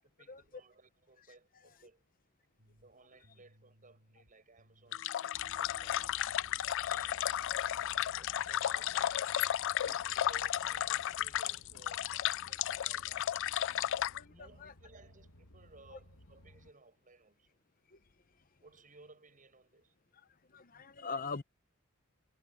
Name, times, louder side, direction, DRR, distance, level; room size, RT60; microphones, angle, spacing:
voice 1, 0.0-2.1 2.8-6.1 7.0-7.6 7.8-9.4 9.9-12.1 12.4-13.3 14.2-17.6 18.6-19.9, right 3 dB, 40° right, 6.9 m, -60 dB
sound 1, 2.6-4.3 4.6-6.2, right 1 dB, 65° right, 4.3 m, -65 dB
sound 2, 4.9-14.2, left 11 dB, 60° left, 0.3 m, -34 dB
sound 3, 5.3-16.7, left 1 dB, 80° left, 2.3 m, -58 dB
voice 2, 13.9-14.7 17.9-18.0 20.5-21.4, left 4 dB, 40° left, 0.8 m, -43 dB
head